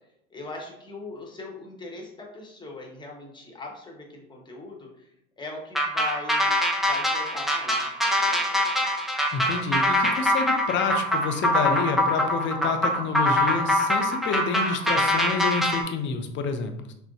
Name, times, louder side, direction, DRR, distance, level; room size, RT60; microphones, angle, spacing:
voice 1, 0.3-5.1 5.4-6.5 6.9-8.9, left 3 dB, 15° left, -1 dB, 1.2 m, -40 dB
sound 1, 5.7-15.8, left 1 dB, ahead, 0.7 m, -23 dB
voice 2, 9.3-16.9, left 5 dB, 40° left, 7 dB, 0.6 m, -28 dB
6.1 x 2.2 x 2.7 m, 0.81 s
hypercardioid pair, 70°, 31 cm